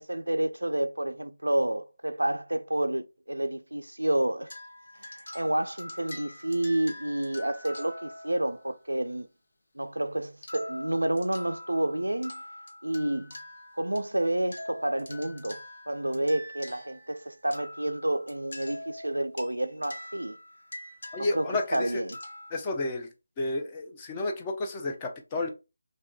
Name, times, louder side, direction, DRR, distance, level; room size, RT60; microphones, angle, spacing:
voice 1, 0.0-4.5 5.0-9.3 9.8-12.4 12.8-13.3 13.8-20.4 21.2-22.2, right 1 dB, 75° right, 0.3 m, -29 dB
sound 1, 4.5-8.8 10.4-14.1 14.5-22.5, left 1 dB, 50° left, 0.8 m, -44 dB
voice 2, 21.1-22.0 22.5-23.1 23.4-25.5, left 2 dB, 15° left, 0.5 m, -31 dB
3.5 x 2.6 x 2.2 m
figure-of-eight pair, 155°, 0 cm